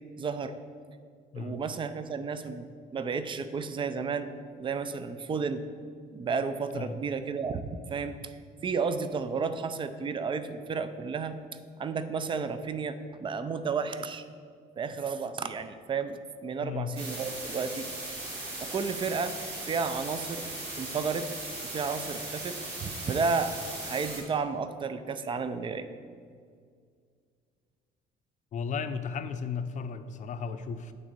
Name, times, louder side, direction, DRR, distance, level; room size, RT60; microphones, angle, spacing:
voice 1, 0.2-0.5 1.3-4.3 4.6-5.7 6.1-8.2 8.6-11.4 11.8-14.2 14.8-17.9 18.6-19.3 19.6-20.4 20.8-21.3 21.7-22.5 22.8-23.5 23.8-25.9, right 5 dB, 30° right, 11 dB, 0.5 m, -32 dB
voice 2, 16.6-16.9 28.5-30.9, left 6 dB, 45° left, 9 dB, 0.6 m, -35 dB
sound 1, 17.0-24.2, right 2 dB, 90° right, 2.4 m, -38 dB
8.9 x 4.1 x 6.8 m, 2.1 s
cardioid pair, 110°, 17 cm